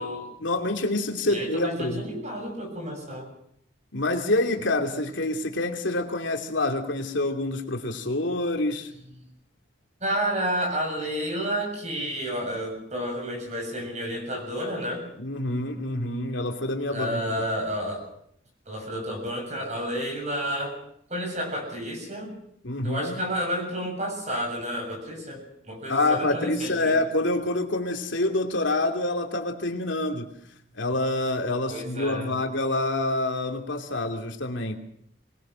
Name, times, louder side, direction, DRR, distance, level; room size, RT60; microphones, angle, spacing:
voice 1, 0.4-2.0 3.9-8.9 15.2-17.2 22.6-23.3 25.9-30.3 30.7-34.8, left 2 dB, 70° left, 4 dB, 2.8 m, -27 dB
voice 2, 1.3-3.3 10.0-15.1 16.9-18.1 18.7-20.8 21.1-22.3 22.8-27.0 31.7-32.4, equal, 35° right, 3 dB, 7.1 m, -30 dB
24.5 x 20.0 x 6.4 m, 0.71 s
head